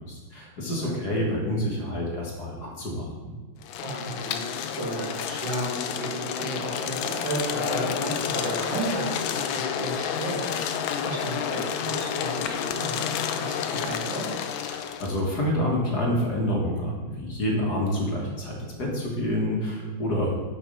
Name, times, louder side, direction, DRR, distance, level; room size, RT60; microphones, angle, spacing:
voice 1, 0.1-3.1 14.7-20.3, left 1 dB, 55° left, -2 dB, 1.9 m, -28 dB
sound 1, 3.6-15.2, left 8 dB, 80° left, 1.3 m, -30 dB
voice 2, 3.8-14.3 20.0-20.3, right 1 dB, 60° right, -5 dB, 2.7 m, -33 dB
6.8 x 5.2 x 5.3 m, 1.3 s
omnidirectional pair, 2.2 m